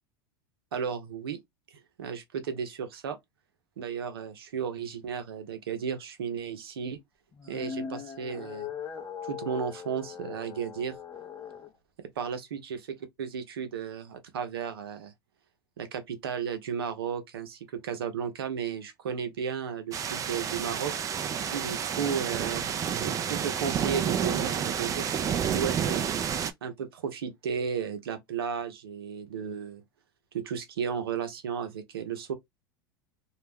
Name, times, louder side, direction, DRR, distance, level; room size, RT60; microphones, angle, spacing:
voice 1, 0.7-1.4 1.7-3.2 3.8-7.0 7.4-8.7 9.2-11.0 12.2-12.8 13.2-15.1 15.8-20.9 21.5-22.7 23.0-26.1 26.6-29.8 30.3-32.3, right 7 dB, 90° right, 0.7 m, -34 dB
sound 1, 7.3-11.7, left 7 dB, 25° left, 0.5 m, -40 dB
sound 2, 19.9-26.5, right 8 dB, 25° right, 0.4 m, -30 dB
2.3 x 2.1 x 3.3 m
hypercardioid pair, 105°, 12 cm